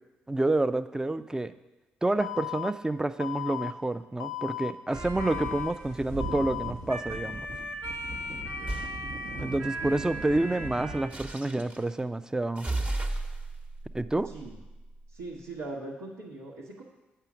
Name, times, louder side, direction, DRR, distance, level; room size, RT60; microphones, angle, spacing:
voice 1, 0.3-1.5 2.0-7.5 9.4-12.7 13.9-14.3, right 2 dB, 15° right, 13 dB, 0.5 m, -28 dB
Alarm, 2.2-2.7 3.2-3.7 4.2-4.7 5.2-5.7 6.2-6.7, left 16 dB, 85° left, 0.4 m, -35 dB
sound 1, 4.9-11.1, right 1 dB, 60° right, 1.0 m, -36 dB
voice 2, 8.4-8.8 14.2-14.6 15.1-16.8, right 2 dB, 80° right, -6 dB, 1.1 m, -41 dB
sound 2, 8.7-9.0 11.1-11.8 12.6-15.2, right 2 dB, 30° right, 1.1 m, -34 dB
8.8 x 5.6 x 6.0 m, 1.1 s
hypercardioid pair, 45°, 5 cm